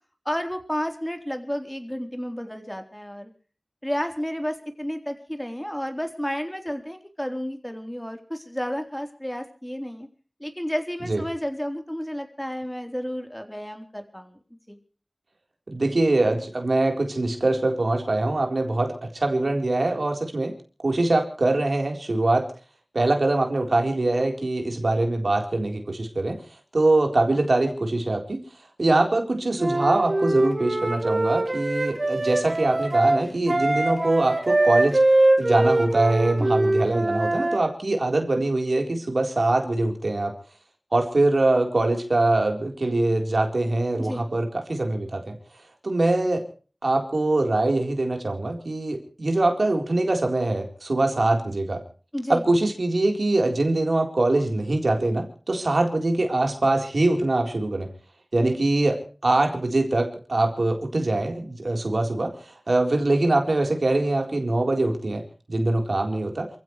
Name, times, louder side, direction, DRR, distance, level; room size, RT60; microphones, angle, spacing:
voice 1, 0.3-3.3 3.8-10.1 10.4-14.4 14.7-14.8 36.4-36.6 43.9-44.2 52.1-52.4, equal, 10° left, 5 dB, 3.8 m, -31 dB
voice 2, 15.7-20.5 20.8-22.5 22.9-26.4 26.7-28.4 28.8-35.0 35.4-40.3 40.9-45.3 45.8-46.4 46.8-51.8 52.3-57.9 58.3-66.5, right 2 dB, 85° right, 3 dB, 4.0 m, -23 dB
Wind instrument woodwind instrument, 29.6-37.6, right 2 dB, 70° right, 4.5 m, -23 dB
28.0 x 15.5 x 3.2 m, 0.40 s
wide cardioid pair, 40°, 0 cm